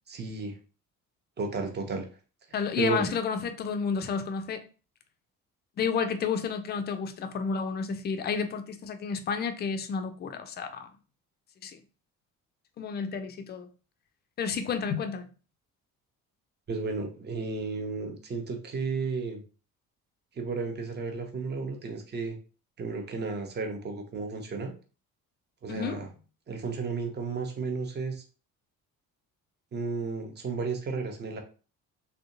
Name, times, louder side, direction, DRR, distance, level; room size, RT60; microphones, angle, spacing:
voice 1, 0.1-0.5 1.4-2.1 2.8-3.0 16.7-19.4 20.4-22.4 22.8-24.7 25.6-26.1 26.5-28.2 29.7-31.4, right 4 dB, 25° right, 0.7 m, -33 dB
voice 2, 2.5-4.6 5.8-10.9 11.6-11.8 12.8-13.7 14.4-15.3 25.7-26.0, left 6 dB, 25° left, 0.3 m, -31 dB
3.5 x 2.2 x 2.5 m
figure-of-eight pair, 50°, 43 cm